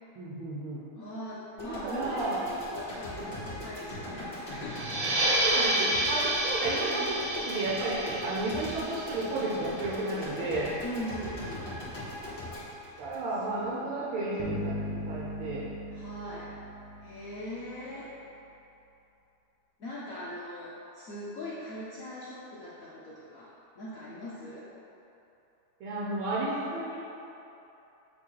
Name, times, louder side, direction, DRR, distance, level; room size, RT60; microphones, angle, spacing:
voice 1, 0.2-0.8 1.6-2.4 5.4-7.2 7.4-10.7 13.0-15.7 25.8-27.0, right 2 dB, 75° right, -6 dB, 1.7 m, -32 dB
voice 2, 0.9-4.9 10.8-11.7 13.5-14.0 15.9-16.6 17.0-18.1 19.8-24.7, left 1 dB, 85° left, -7 dB, 0.7 m, -41 dB
sound 1, 1.6-13.8, left 1 dB, 30° left, 1.5 m, -40 dB
sound 2, 4.7-9.9, right 1 dB, 55° right, 1.6 m, -30 dB
sound 3, 14.4-17.8, equal, 65° left, 1.4 m, -38 dB
7.7 x 3.3 x 4.6 m, 2.9 s
omnidirectional pair, 2.4 m